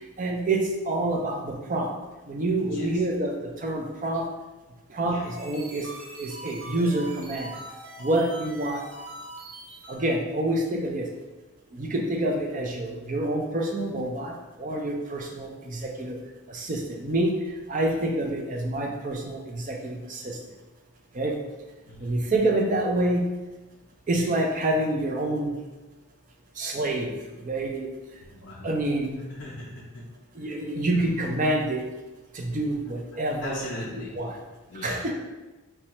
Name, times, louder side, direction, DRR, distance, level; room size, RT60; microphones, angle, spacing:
voice 1, 0.2-1.9 2.3-4.3 4.9-5.9 6.2-7.5 8.0-8.8 9.9-11.1 11.7-16.2 16.5-17.3 17.7-20.4 21.1-21.4 22.0-23.3 24.1-25.5 26.6-27.1 27.4-27.9 28.6-29.2 30.4-31.9 32.3-33.6 34.0-34.4 34.8-35.1, right 1 dB, 35° right, 2 dB, 0.4 m, -27 dB
sound 1, 5.1-10.1, right 2 dB, 75° right, 0.9 m, -42 dB
voice 2, 28.3-28.7 29.4-30.0 30.4-30.6 33.4-34.2 34.7-35.0, left 1 dB, 60° left, -6 dB, 0.5 m, -38 dB
4.1 x 2.3 x 2.9 m, 1.1 s
head